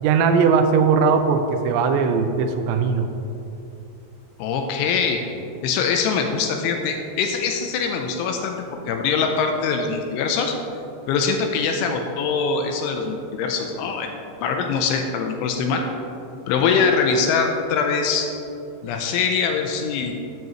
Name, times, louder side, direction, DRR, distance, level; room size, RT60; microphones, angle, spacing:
voice 1, 0.0-3.1, right 5 dB, 85° right, 6 dB, 2.6 m, -19 dB
voice 2, 4.4-5.2 5.6-8.6 8.9-10.6 11.1-15.9 16.5-18.3 18.8-20.1, left 5 dB, 85° left, 4 dB, 3.0 m, -23 dB
13.5 x 9.4 x 3.0 m, 2.8 s
omnidirectional pair, 5.7 m